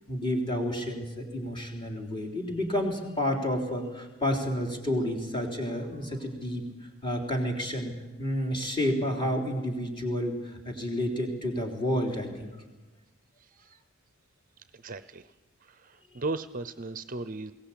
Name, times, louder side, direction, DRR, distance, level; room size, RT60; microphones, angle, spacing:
voice 1, 0.1-7.9 8.2-12.6, equal, 25° left, 2 dB, 3.4 m, -30 dB
voice 2, 13.4-13.8 14.7-15.3 15.6-17.5, right 3 dB, 40° right, 13 dB, 0.6 m, -37 dB
21.5 x 17.5 x 8.6 m, 1.2 s
head